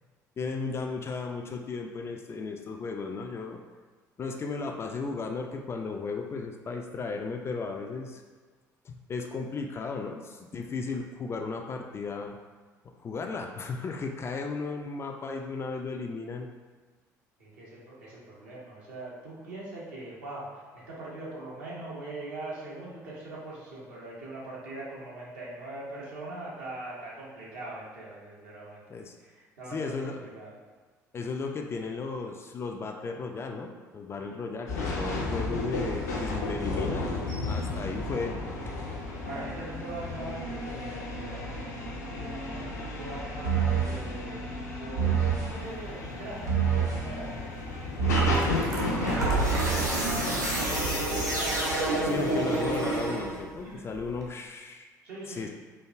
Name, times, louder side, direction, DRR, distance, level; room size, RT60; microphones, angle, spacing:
voice 1, 0.4-3.6 4.2-8.2 8.8-12.4 12.9-16.5 28.9-29.1 29.7-30.3 31.1-37.1 37.5-38.4 52.0-54.9 55.3-55.5, left 4 dB, 30° left, 3 dB, 0.3 m, -35 dB
voice 2, 17.4-28.8 29.2-30.5 34.2-34.3 37.5-37.9 39.2-44.5 44.8-47.8 48.2-51.8 52.6-52.7 53.6-53.9 55.0-55.5, right 2 dB, 65° right, -6 dB, 1.0 m, -41 dB
sound 1, 34.7-49.6, left 2 dB, 75° left, 0.6 m, -33 dB
sound 2, 43.4-44.0 45.0-45.5 46.5-47.0 48.0-48.5 49.2-53.6, right 4 dB, 85° right, 0.6 m, -27 dB
sound 3, 45.6-54.3, right 1 dB, 40° right, 0.8 m, -42 dB
4.5 x 2.5 x 2.4 m, 1.4 s
figure-of-eight pair, 55°, 9 cm